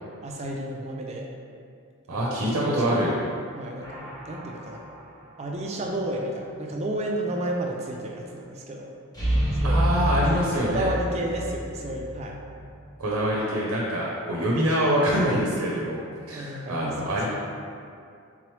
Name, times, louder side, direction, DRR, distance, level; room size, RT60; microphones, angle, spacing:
voice 1, 0.2-1.3 2.1-4.8 5.4-8.9 9.6-9.8 10.2-10.4 10.7-12.4 13.3-13.6 16.3-17.3, right 1 dB, 30° right, 0 dB, 0.3 m, -32 dB
voice 2, 2.1-3.1 9.6-10.9 13.0-16.0 16.3-17.3, equal, 90° right, -4 dB, 0.6 m, -25 dB
sound 1, 3.8-4.7 9.1-12.1 12.4-12.5, right 1 dB, 20° left, 0.6 m, -27 dB
3.8 x 3.0 x 3.1 m, 2.4 s
head